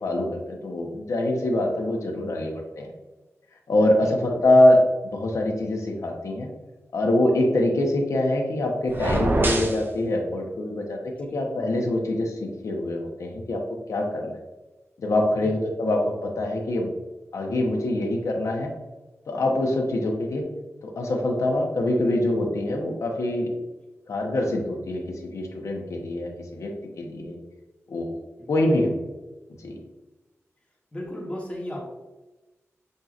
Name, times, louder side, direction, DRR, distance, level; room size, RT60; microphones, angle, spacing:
voice 1, 0.0-2.9 3.7-6.5 6.9-13.6 13.9-14.4 15.0-16.9 17.3-18.7 19.3-20.4 20.8-23.5 24.1-26.7 27.0-27.4 27.9-28.2 28.5-28.9 29.6-29.8, left 1 dB, 80° left, 1 dB, 0.8 m, -24 dB
sound 1, 8.9-9.8, right 1 dB, 40° right, 0.6 m, -23 dB
voice 2, 28.4-28.7 30.9-31.8, left 1 dB, 25° left, -3 dB, 1.2 m, -36 dB
6.2 x 2.7 x 2.4 m, 1.1 s
wide cardioid pair, 85°, 5 cm